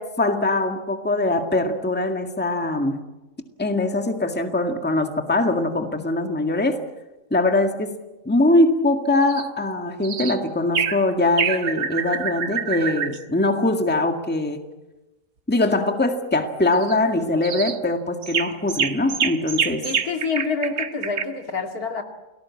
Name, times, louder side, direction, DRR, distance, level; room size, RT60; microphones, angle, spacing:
voice 1, 0.0-3.0 3.6-6.8 7.3-8.0 8.3-14.6 15.5-19.8, left 2 dB, 5° left, 5 dB, 1.8 m, -22 dB
sound 1, 9.2-9.5 10.0-10.4 10.7-11.0 11.4-13.2 16.7-16.9 17.4-17.8 18.2-21.2, right 7 dB, 90° right, 1.9 m, -26 dB
voice 2, 19.8-22.0, left 4 dB, 70° left, 4 dB, 3.0 m, -27 dB
29.5 x 19.5 x 8.5 m, 1.1 s
omnidirectional pair, 1.7 m